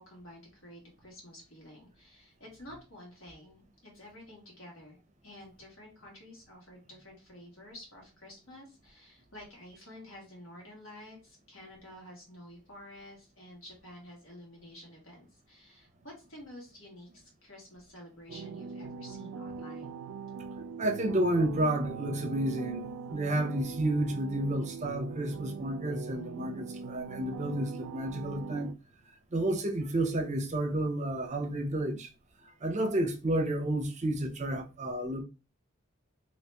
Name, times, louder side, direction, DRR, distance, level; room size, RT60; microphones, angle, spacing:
voice 1, 0.0-5.0 5.2-19.9, left 1 dB, 70° left, 1.8 m, -50 dB
sound 1, 18.3-28.7, right 5 dB, 75° right, 0.3 m, -41 dB
voice 2, 20.8-28.7 29.3-32.1 32.6-35.2, right 1 dB, 35° right, 0.6 m, -31 dB
2.9 x 2.9 x 3.3 m
head